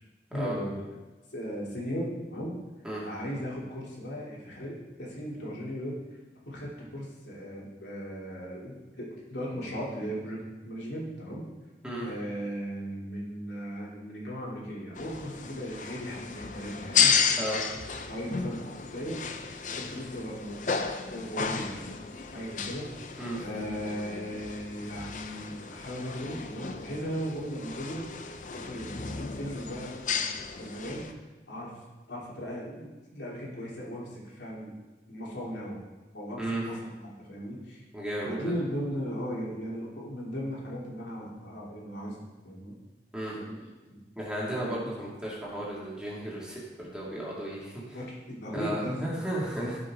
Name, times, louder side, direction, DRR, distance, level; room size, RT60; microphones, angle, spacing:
voice 1, 0.3-0.9 1.3-2.5 3.0-6.0 6.5-11.4 12.0-17.4 18.0-18.6 18.9-19.2 19.7-20.9 21.1-21.8 22.3-22.9 23.4-28.1 28.5-30.0 30.6-31.7 32.1-34.8 35.1-35.8 36.1-37.8 38.2-42.2 42.4-42.7 43.3-44.0 44.6-44.9 47.9-49.0 49.6-49.7, equal, 90° left, -5 dB, 3.2 m, -37 dB
sound 1, 15.0-31.1, left 6 dB, 45° left, 0.6 m, -33 dB
voice 2, 37.9-38.4 43.1-43.3 44.2-48.0 48.5-49.8, right 1 dB, 5° right, -6 dB, 2.3 m, -34 dB
15.5 x 5.9 x 3.8 m, 1.2 s
head